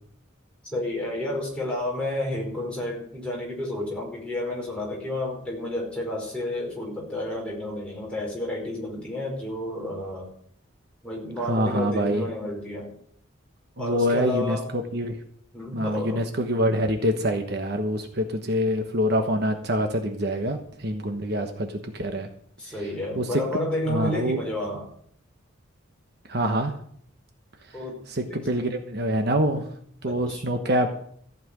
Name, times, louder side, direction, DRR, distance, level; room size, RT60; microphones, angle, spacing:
voice 1, 0.6-10.3 11.0-12.9 13.8-14.7 15.5-16.2 22.6-24.9 27.7-28.0 28.3-28.4 30.0-30.4, left 1 dB, 5° left, -3 dB, 4.9 m, -31 dB
voice 2, 11.4-12.3 13.8-15.2 15.7-22.3 23.2-23.4 23.9-24.4 26.3-26.8 27.7-27.8 28.1-29.7 30.0-30.9, equal, 50° right, 5 dB, 1.2 m, -25 dB
14.5 x 6.0 x 9.0 m, 0.64 s
head